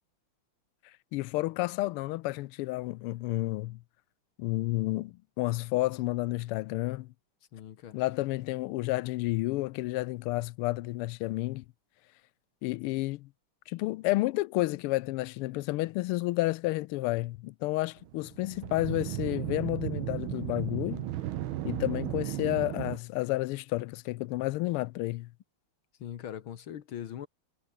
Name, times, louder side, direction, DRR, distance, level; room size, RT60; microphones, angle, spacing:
voice 1, 1.1-3.8 4.4-7.1 7.9-11.6 12.6-13.3 13.7-21.1 21.6-25.3, left 19 dB, 85° left, 1.5 m, -31 dB
voice 2, 7.5-8.0 26.0-27.3, left 10 dB, 70° left, 2.0 m, -41 dB
sound 1, 18.0-23.0, right 13 dB, 70° right, 1.6 m, -35 dB
omnidirectional pair, 2.4 m